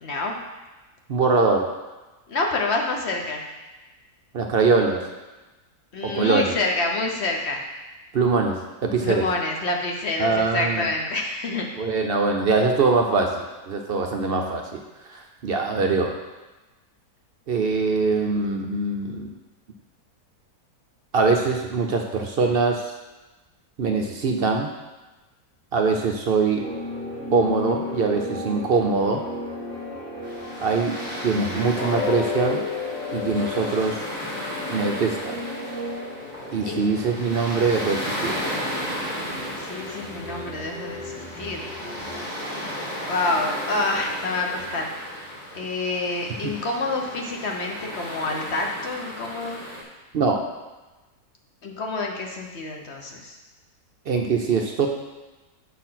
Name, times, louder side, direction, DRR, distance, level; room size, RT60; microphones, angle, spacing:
voice 1, 0.0-0.4 2.3-3.4 5.9-7.6 9.0-11.7 31.3-31.9 36.7-36.8 39.6-41.7 43.1-44.9 45.5-49.6 51.6-53.4, left 2 dB, 50° left, 1 dB, 1.1 m, -27 dB
voice 2, 1.1-1.7 4.3-5.0 6.0-6.5 8.1-9.3 10.2-10.9 11.7-16.2 17.5-19.3 21.1-22.9 23.8-24.7 25.7-26.7 27.3-29.2 30.6-32.6 33.1-34.0 34.7-35.4 36.5-38.4 46.4-46.5 50.1-50.5 54.1-54.9, right 4 dB, 55° right, 3 dB, 0.6 m, -23 dB
sound 1, 26.6-42.3, equal, 5° right, 2.1 m, -36 dB
sound 2, 30.2-49.8, equal, 30° left, 2.3 m, -34 dB
sound 3, 31.8-37.7 38.1-38.3 38.8-38.9, left 7 dB, 70° left, 1.2 m, -33 dB
7.3 x 4.5 x 5.7 m, 1.1 s
omnidirectional pair, 1.6 m